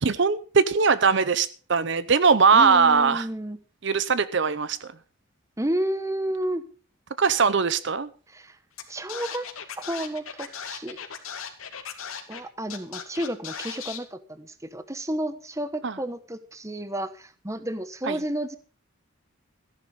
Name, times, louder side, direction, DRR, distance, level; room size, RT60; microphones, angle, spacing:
voice 1, 0.0-3.3 3.8-4.9 7.2-8.1 15.8-16.0 18.1-18.2, right 5 dB, 55° right, 0.7 m, -21 dB
voice 2, 2.5-3.6 5.6-6.6 8.3-8.6 8.9-9.5 9.8-11.0 12.3-18.6, right 1 dB, 15° right, 1.1 m, -31 dB
Scratching (performance technique), 8.8-8.9 9.1-12.4 12.7-14.0, left 7 dB, 80° left, 2.4 m, -37 dB
15.0 x 10.5 x 5.3 m
head